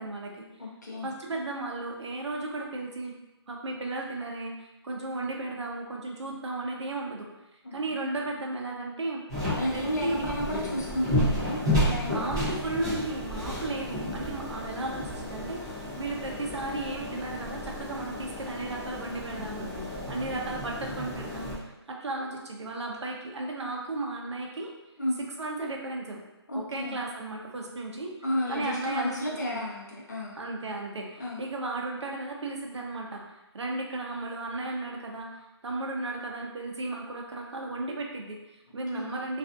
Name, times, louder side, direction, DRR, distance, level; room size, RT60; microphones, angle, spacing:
voice 1, 0.0-0.4 1.0-3.1 3.5-7.3 7.7-9.2 9.7-10.3 12.1-24.7 25.4-26.2 26.5-28.1 28.5-29.6 30.3-39.4, right 2 dB, 80° right, 0 dB, 0.6 m, -35 dB
voice 2, 0.6-1.1 7.6-7.7 9.5-12.4 15.9-16.0 25.0-25.2 26.5-27.0 28.2-30.4 31.2-31.4 38.9-39.1, left 1 dB, 40° left, -4 dB, 0.6 m, -32 dB
sound 1, 9.3-21.5, left 1 dB, 10° right, 0.5 m, -32 dB
2.4 x 2.4 x 2.4 m, 0.99 s
hypercardioid pair, 180°, 14 cm